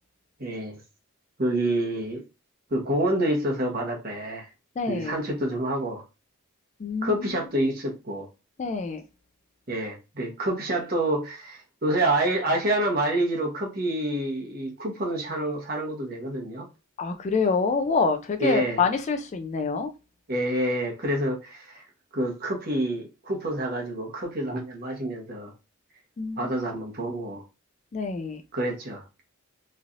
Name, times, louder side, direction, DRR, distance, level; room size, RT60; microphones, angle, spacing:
voice 1, 0.4-0.8 1.4-2.2 2.7-4.4 4.9-6.0 7.0-8.3 9.7-16.6 18.4-18.8 20.3-21.8 22.1-25.5 26.4-27.4 28.5-29.2, right 1 dB, 45° right, 1.0 m, -27 dB
voice 2, 4.8-5.1 6.8-7.4 8.6-9.0 17.0-19.9 26.2-26.5 27.9-28.4, left 4 dB, 35° left, 0.3 m, -26 dB
3.1 x 2.6 x 2.5 m
head